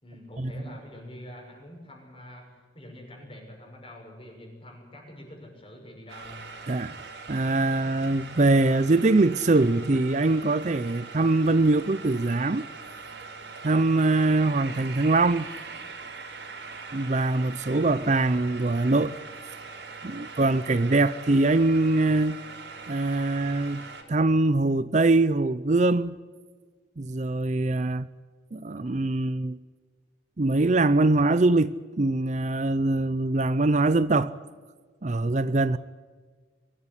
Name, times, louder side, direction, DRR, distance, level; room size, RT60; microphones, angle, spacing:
voice 1, 0.0-6.5, left 1 dB, 30° left, 6.3 m, -45 dB
sound 1, 6.1-24.0, right 4 dB, 65° right, 3.5 m, -42 dB
voice 2, 7.3-12.6 13.6-15.5 16.9-19.2 20.0-22.4 22.9-26.2 27.0-28.1 28.5-29.6 30.4-34.3 35.0-35.8, right 2 dB, 40° right, 0.6 m, -23 dB
23.5 x 14.0 x 9.9 m
head